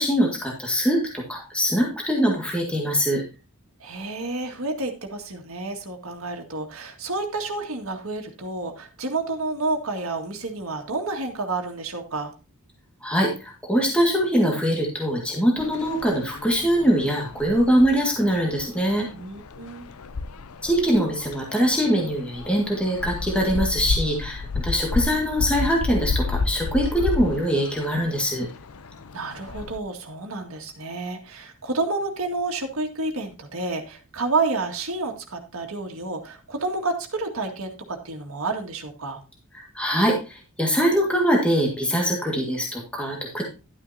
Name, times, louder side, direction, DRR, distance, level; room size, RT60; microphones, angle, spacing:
voice 1, 0.0-3.2 13.0-19.1 20.6-28.5 39.5-43.4, equal, 5° left, -1 dB, 1.8 m, -23 dB
voice 2, 3.8-12.3 19.1-19.9 29.1-39.2, right 3 dB, 65° right, 3 dB, 2.0 m, -30 dB
sound 1, 15.6-29.8, left 4 dB, 75° left, 0.6 m, -32 dB
11.5 x 9.1 x 2.7 m, 0.30 s
head